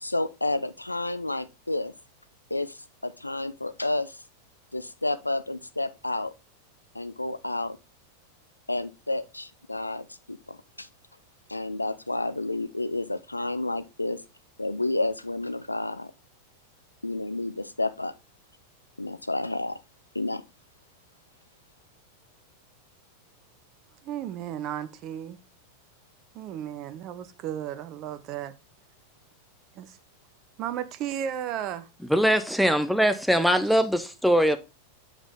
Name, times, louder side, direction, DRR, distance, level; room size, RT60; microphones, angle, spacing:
voice 1, 0.0-1.9 2.5-4.2 4.7-6.3 6.9-7.8 8.7-10.9 11.5-14.2 14.6-16.1 17.0-18.1 19.0-19.8 20.1-20.4, left 2 dB, 85° left, 0.4 m, -30 dB
voice 2, 24.0-25.4 26.3-28.5 29.7-30.0 30.6-31.9 33.7-33.8, right 10 dB, 40° right, 0.7 m, -34 dB
voice 3, 32.1-34.6, equal, ahead, 0.6 m, -22 dB
7.4 x 5.0 x 3.6 m
figure-of-eight pair, 90°, 0 cm